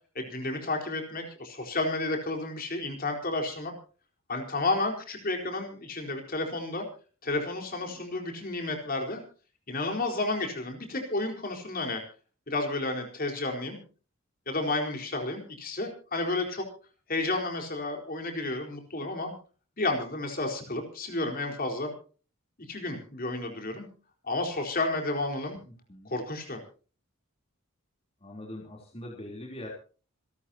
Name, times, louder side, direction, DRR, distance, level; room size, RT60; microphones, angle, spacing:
voice 1, 0.1-3.7 4.3-6.9 7.2-9.2 9.7-12.0 12.5-13.8 14.5-16.6 17.1-19.3 19.8-21.9 22.7-23.9 24.3-25.6 26.0-26.6, left 2 dB, 45° left, 3 dB, 4.4 m, -31 dB
voice 2, 25.7-26.1 28.2-29.7, left 1 dB, 30° left, -1 dB, 3.6 m, -42 dB
27.5 x 12.5 x 2.9 m, 0.38 s
head